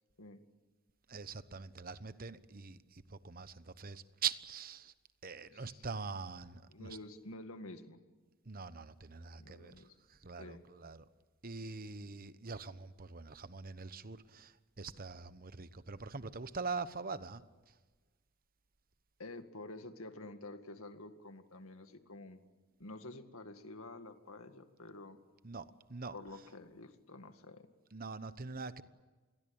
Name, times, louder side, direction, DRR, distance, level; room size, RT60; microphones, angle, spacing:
voice 1, 1.1-4.9 5.2-6.9 8.5-9.7 10.2-11.0 11.4-17.4 25.4-26.1 27.9-28.8, right 5 dB, 40° right, 13 dB, 1.1 m, -43 dB
voice 2, 5.5-5.9 6.7-8.0 9.4-10.0 10.4-10.6 19.2-22.4 22.8-25.2 26.1-27.7, left 2 dB, 70° left, 8 dB, 2.1 m, -49 dB
28.0 x 22.0 x 8.8 m, 1.3 s
head